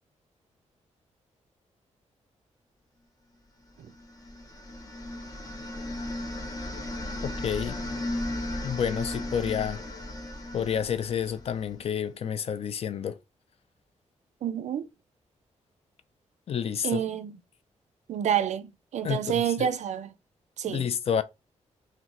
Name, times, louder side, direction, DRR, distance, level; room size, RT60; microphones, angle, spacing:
sound 1, 3.9-11.9, left 1 dB, 30° left, 0.8 m, -36 dB
voice 1, 7.2-7.8 8.6-9.8 10.5-13.2 16.5-17.0 19.0-19.7 20.6-21.2, left 8 dB, 55° left, 0.4 m, -29 dB
voice 2, 14.4-14.9 16.8-17.4 18.1-20.1 20.6-20.9, right 9 dB, 70° right, 0.4 m, -28 dB
2.9 x 2.2 x 3.7 m
wide cardioid pair, 120°, 12 cm